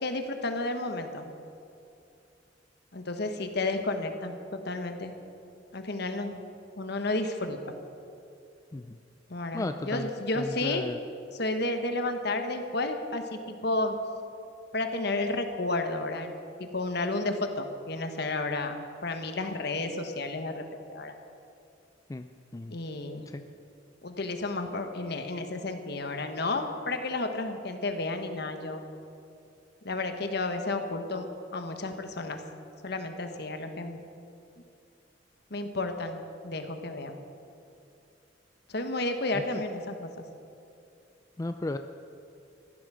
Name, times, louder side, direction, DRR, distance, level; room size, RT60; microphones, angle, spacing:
voice 1, 0.0-1.3 2.9-5.1 5.7-6.4 6.8-7.6 9.3-10.9 11.3-13.9 14.7-16.3 16.6-18.8 19.0-20.6 20.9-21.1 22.7-23.3 24.0-28.8 29.8-31.3 31.5-32.4 32.8-34.1 35.5-37.2 38.7-40.2, left 2 dB, 60° left, 6 dB, 1.3 m, -32 dB
voice 2, 9.5-10.1 10.4-11.0 22.1-22.8 23.3-23.4 41.4-41.8, left 2 dB, 20° left, 8 dB, 0.4 m, -34 dB
15.0 x 11.5 x 6.2 m, 2.6 s
head